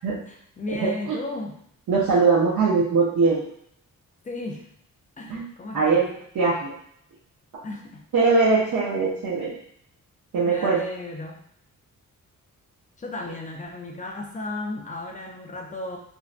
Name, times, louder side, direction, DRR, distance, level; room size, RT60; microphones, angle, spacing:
voice 1, 0.3-1.6 4.2-4.7 5.2-6.0 7.6-8.1 10.4-11.4 13.0-16.0, left 2 dB, 25° left, 1 dB, 0.4 m, -34 dB
voice 2, 1.9-3.4 5.3-5.5 5.7-6.1 6.3-6.7 7.5-7.6 8.1-9.5 10.3-10.8, right 4 dB, 70° right, -7 dB, 0.7 m, -21 dB
2.6 x 2.1 x 2.4 m, 0.68 s
wide cardioid pair, 110°, 33 cm